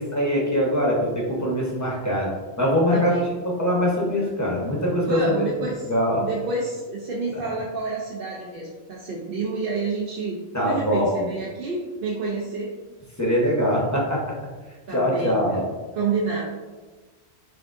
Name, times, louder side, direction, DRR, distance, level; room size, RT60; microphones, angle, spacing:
voice 1, 0.0-2.3 2.6-3.2 3.4-5.4 5.9-6.3 10.5-11.3 13.2-14.2 14.9-15.6, equal, 15° left, -4 dB, 0.8 m, -22 dB
voice 2, 2.9-3.2 5.1-5.9 6.2-10.4 10.6-12.7 14.9-15.7 16.0-16.4, right 3 dB, 60° right, -3 dB, 0.7 m, -29 dB
5.8 x 2.6 x 2.5 m, 1.3 s
omnidirectional pair, 1.2 m